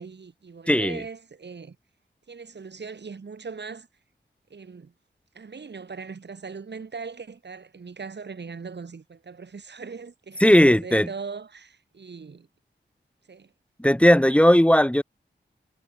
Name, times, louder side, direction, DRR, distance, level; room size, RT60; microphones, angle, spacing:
voice 1, 0.0-1.8 2.3-3.9 4.5-4.9 5.3-12.5 13.3-13.5, right 5 dB, 65° right, 3.6 m, -39 dB
voice 2, 0.7-1.0 10.4-11.1 13.8-15.0, equal, 5° left, 1.9 m, -17 dB
wide cardioid pair, 80°, 19 cm